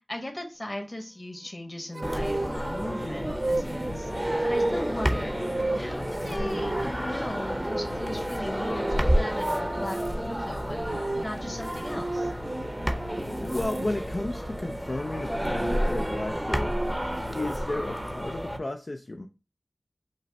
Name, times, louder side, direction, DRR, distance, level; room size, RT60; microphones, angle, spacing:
voice 1, 0.1-4.1 4.4-5.4 5.7-12.3, left 1 dB, 30° left, 2 dB, 1.3 m, -38 dB
sound 1, 1.9-13.9 15.0-17.2, right 2 dB, 50° right, 0.3 m, -34 dB
sound 2, 2.0-18.6, equal, 5° right, 0.7 m, -30 dB
voice 2, 13.3-16.8 17.3-19.3, left 2 dB, 50° left, 5 dB, 0.4 m, -33 dB
5.3 x 2.1 x 4.1 m, 0.31 s
wide cardioid pair, 45°, 0 cm